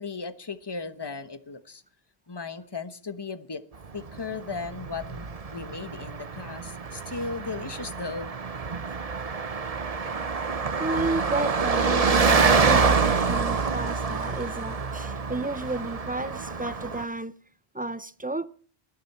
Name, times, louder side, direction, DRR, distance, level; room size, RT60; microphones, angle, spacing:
voice 1, 0.0-1.8 2.3-3.6 3.9-8.3, left 4 dB, 25° left, 1.2 m, -36 dB
Car passing by, 3.8-17.1, right 5 dB, 40° right, 1.0 m, -26 dB
voice 2, 10.8-17.3 17.7-18.5, right 2 dB, 10° right, 0.6 m, -32 dB
20.0 x 14.5 x 4.4 m
omnidirectional pair, 1.0 m